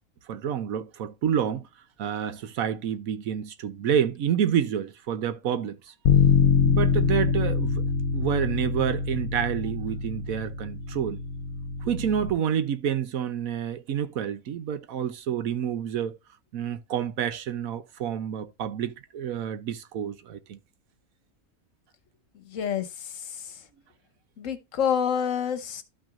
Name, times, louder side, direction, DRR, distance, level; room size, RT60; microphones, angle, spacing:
voice 1, 0.3-1.7 2.0-5.9 6.6-7.8 8.1-11.2 11.8-16.2 16.5-20.6, right 9 dB, 80° right, 1.2 m, -28 dB
Bass guitar, 6.1-12.3, left 6 dB, 80° left, 1.2 m, -24 dB
voice 2, 22.3-23.6 24.4-25.8, left 8 dB, 65° left, 1.3 m, -28 dB
12.5 x 5.9 x 2.6 m
omnidirectional pair, 1.5 m